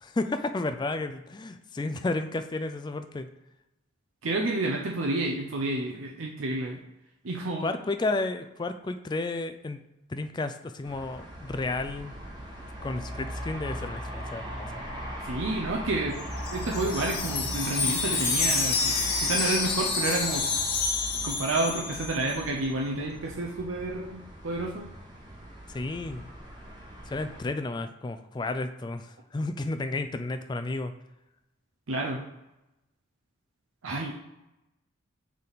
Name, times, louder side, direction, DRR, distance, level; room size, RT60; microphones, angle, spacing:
voice 1, 0.0-3.3 7.6-9.8 10.1-12.1 12.8-14.8 25.7-26.3 27.1-30.9, left 2 dB, 20° left, 8 dB, 0.3 m, -32 dB
voice 2, 4.2-6.8 7.2-7.7 15.2-16.2 16.5-20.4 21.2-24.9 31.9-32.2 33.8-34.2, right 2 dB, 90° right, 0 dB, 0.7 m, -30 dB
sound 1, 10.8-27.4, equal, 20° right, 1.2 m, -39 dB
Wind chime, 16.2-22.4, left 4 dB, 55° left, 1.1 m, -28 dB
6.4 x 3.6 x 4.0 m, 0.93 s
head